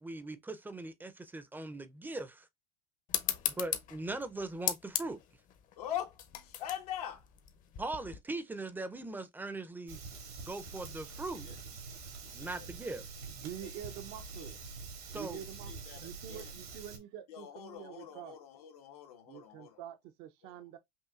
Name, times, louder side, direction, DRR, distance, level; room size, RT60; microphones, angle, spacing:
voice 1, 0.0-2.5 3.5-5.2 7.8-10.0 10.4-11.5 12.3-13.1 15.1-15.4, right 2 dB, 10° right, 0.6 m, -40 dB
sound 1, 3.1-8.2, left 10 dB, 45° left, 0.8 m, -37 dB
voice 2, 3.2-3.6 5.8-7.3 11.4-11.6 12.2-12.7 13.6-13.8 14.4-14.6 15.2-16.6 17.3-19.8 20.4-20.6, left 10 dB, 85° left, 1.5 m, -44 dB
Fire, 9.9-17.0, right 4 dB, 85° right, 2.1 m, -46 dB
voice 3, 13.3-14.6 15.1-15.7 16.0-18.4 19.3-20.8, right 11 dB, 60° right, 0.7 m, -46 dB
5.6 x 2.7 x 2.4 m
supercardioid pair, 110°, 19 cm